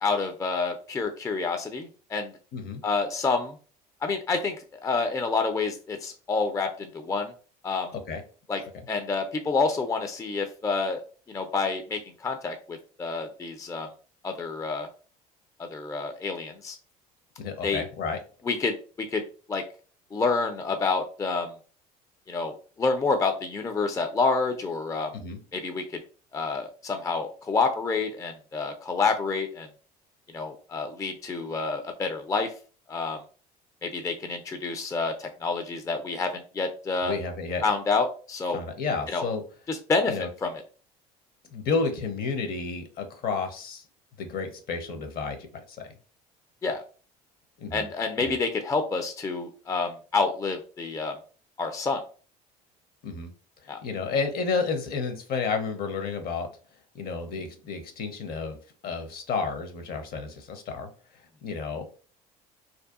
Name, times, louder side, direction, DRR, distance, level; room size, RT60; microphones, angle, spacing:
voice 1, 0.0-2.3 2.8-3.6 4.0-4.6 4.8-7.3 7.6-7.9 8.5-8.6 8.9-11.0 11.3-13.9 14.2-14.9 15.7-16.8 17.6-17.8 18.4-19.2 19.5-19.6 20.1-21.5 22.3-25.1 25.5-26.0 26.3-29.7 30.3-32.5 32.9-33.2 33.8-37.1 37.6-38.6 39.1-39.2 39.7-40.5 46.6-46.8 47.7-51.1 51.6-52.0 53.7-53.8, left 4 dB, 15° left, 6 dB, 0.3 m, -28 dB
voice 2, 17.4-18.2 25.1-25.4 37.0-37.6 38.5-39.4 40.1-40.3 41.5-43.8 44.2-45.9 47.6-47.9 48.2-48.4 53.0-53.3 53.8-56.5 56.9-58.6 58.8-60.9 61.4-61.9, left 4 dB, 50° left, 6 dB, 0.7 m, -31 dB
2.6 x 2.2 x 2.3 m, 0.39 s
hypercardioid pair, 70°, 19 cm